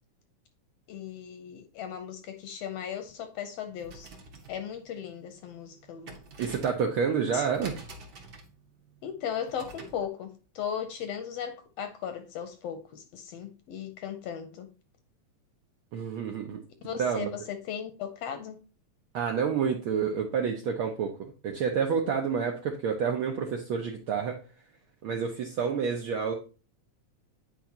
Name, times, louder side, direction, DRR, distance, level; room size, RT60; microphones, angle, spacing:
voice 1, 0.9-4.1 4.5-6.2 7.3-7.5 9.0-14.7 16.8-18.6, left 8 dB, 75° left, 1.5 m, -37 dB
sound 1, 3.7-10.1, right 3 dB, 50° right, 1.4 m, -48 dB
voice 2, 6.4-7.7 15.9-16.6 17.0-17.3 19.1-24.4 25.0-26.3, right 6 dB, 80° right, 1.1 m, -29 dB
9.1 x 4.6 x 2.9 m
omnidirectional pair, 3.4 m